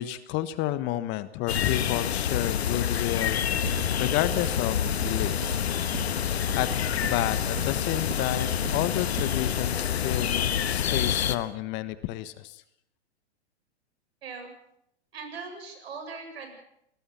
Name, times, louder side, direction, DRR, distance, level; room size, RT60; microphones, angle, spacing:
voice 1, 0.0-5.6 6.6-6.7 7.1-12.6, left 14 dB, 35° left, 14 dB, 1.4 m, -31 dB
sound 1, 1.5-11.4, left 9 dB, 70° left, 1.7 m, -27 dB
sound 2, 3.5-9.6, right 11 dB, 40° right, 2.1 m, -41 dB
voice 2, 14.2-14.5 15.1-16.5, right 5 dB, 65° right, 5 dB, 7.8 m, -40 dB
27.0 x 20.0 x 5.8 m, 0.74 s
hypercardioid pair, 115°, 33 cm